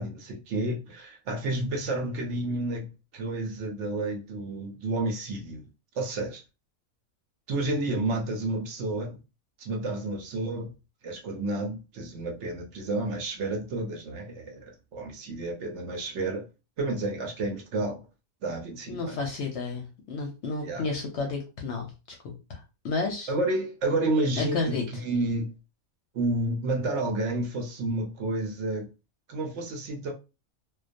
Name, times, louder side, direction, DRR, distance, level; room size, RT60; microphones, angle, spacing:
voice 1, 0.0-2.9 3.1-5.6 5.9-6.4 7.5-9.2 9.6-10.7 11.0-16.5 16.8-18.0 18.4-19.2 20.6-20.9 23.3-25.5 26.1-28.9 29.3-30.1, right 2 dB, 65° right, 0.8 m, -30 dB
voice 2, 18.9-21.9 22.2-23.3 24.4-24.8, left 3 dB, 65° left, 0.8 m, -31 dB
2.3 x 2.2 x 2.5 m
omnidirectional pair, 1.4 m